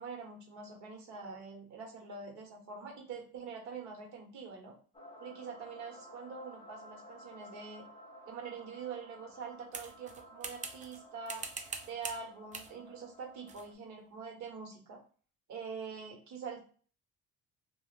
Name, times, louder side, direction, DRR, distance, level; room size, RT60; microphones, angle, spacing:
voice 1, 0.0-4.7 5.2-7.8 8.3-11.4 11.8-15.0 15.5-16.6, right 5 dB, 70° right, 1 dB, 1.3 m, -44 dB
sound 1, 4.9-13.7, equal, 20° left, 0.6 m, -54 dB
sound 2, 9.7-11.0 11.3-12.2 12.5-12.7 13.5-13.7, right 4 dB, 25° right, 0.5 m, -43 dB
2.5 x 2.4 x 3.2 m, 0.41 s
cardioid pair, 105°, 29 cm